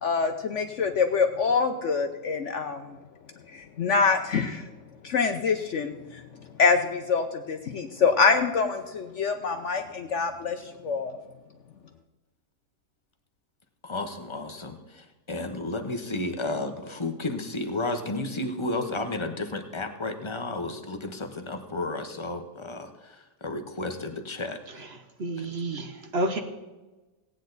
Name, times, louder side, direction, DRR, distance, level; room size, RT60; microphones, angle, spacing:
voice 1, 0.0-2.8 3.5-4.6 5.0-6.0 6.6-11.2, left 5 dB, 60° left, 6 dB, 0.8 m, -25 dB
voice 2, 13.8-24.6 25.4-25.5, left 2 dB, 25° left, 6 dB, 0.7 m, -32 dB
voice 3, 25.2-26.4, right 1 dB, 45° right, 6 dB, 0.9 m, -29 dB
17.5 x 9.2 x 4.0 m, 1.2 s
omnidirectional pair, 1.8 m